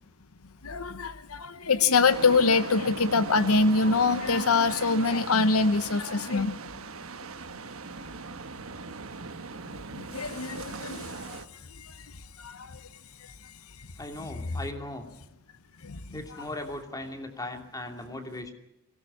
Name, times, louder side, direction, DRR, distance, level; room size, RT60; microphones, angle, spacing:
voice 1, 0.6-6.6 9.9-11.4 11.8-11.9 12.4-12.8 15.8-16.0, left 4 dB, 85° left, 13 dB, 1.0 m, -24 dB
sound 1, 2.1-11.4, right 4 dB, 75° right, 1.3 m, -39 dB
voice 2, 14.0-15.1 16.1-18.5, left 1 dB, 15° left, 5 dB, 2.6 m, -38 dB
22.0 x 17.5 x 9.9 m, 0.81 s
head